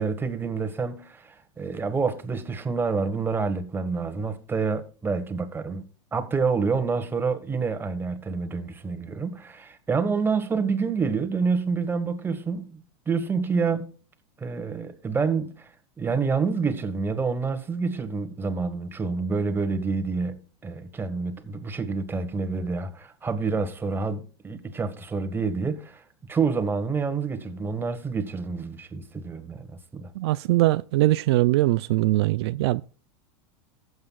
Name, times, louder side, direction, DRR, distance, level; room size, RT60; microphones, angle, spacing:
voice 1, 0.0-5.8 6.1-12.8 13.1-13.9 14.4-15.7 16.0-26.0 26.3-29.7 29.9-30.1, right 4 dB, 15° right, 1.5 m, -28 dB
voice 2, 30.2-32.8, right 17 dB, 70° right, 0.4 m, -21 dB
18.5 x 8.1 x 2.4 m
supercardioid pair, 120°, 14 cm